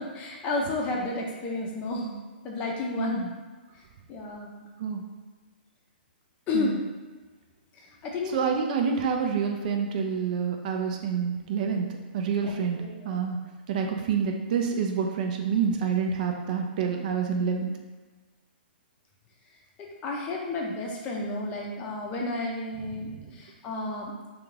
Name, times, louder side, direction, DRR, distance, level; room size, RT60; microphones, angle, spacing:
voice 1, 0.0-2.2 2.4-3.3 4.1-4.7 6.5-6.8 7.7-8.4 12.4-12.5 12.8-13.2 20.0-24.1, left 2 dB, 25° left, -1 dB, 0.5 m, -32 dB
voice 2, 3.0-3.3 4.8-5.0 6.5-6.8 8.3-11.9 12.1-12.8 13.0-13.4 13.7-17.7 23.0-23.4, right 6 dB, 50° right, 3 dB, 0.4 m, -27 dB
2.4 x 2.3 x 3.2 m, 1.3 s
hypercardioid pair, 135°, 6 cm